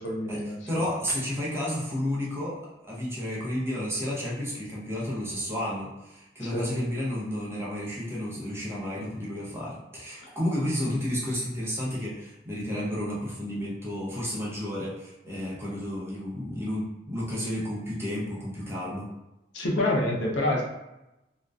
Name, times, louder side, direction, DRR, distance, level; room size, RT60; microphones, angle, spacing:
voice 1, 0.0-0.8 6.4-6.7 10.2-10.3 19.5-20.6, left 1 dB, 70° left, -1 dB, 0.5 m, -28 dB
voice 2, 0.7-2.6 2.9-19.0, equal, 15° right, -7 dB, 0.6 m, -31 dB
2.5 x 2.1 x 2.3 m, 0.95 s
head